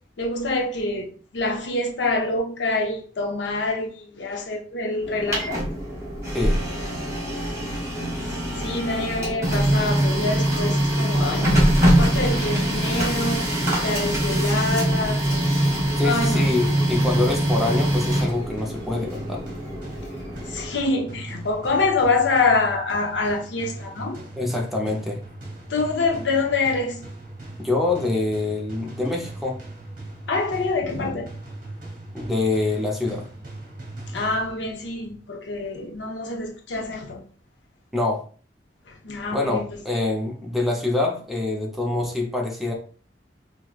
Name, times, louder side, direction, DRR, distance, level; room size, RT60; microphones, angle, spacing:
voice 1, 0.2-5.6 8.6-15.2 16.0-16.5 20.5-24.2 25.7-27.0 30.3-31.3 34.1-37.2 38.9-39.8, left 3 dB, 80° left, 0.6 m, -26 dB
Printer, 5.0-20.8, right 1 dB, 15° right, 1.6 m, -23 dB
sound 1, 15.9-34.9, right 2 dB, 50° right, 1.0 m, -40 dB
voice 2, 16.0-19.4 24.4-25.2 27.6-29.6 32.1-33.3 37.9-38.2 39.3-42.7, left 2 dB, ahead, 0.6 m, -25 dB
4.8 x 2.1 x 2.3 m
head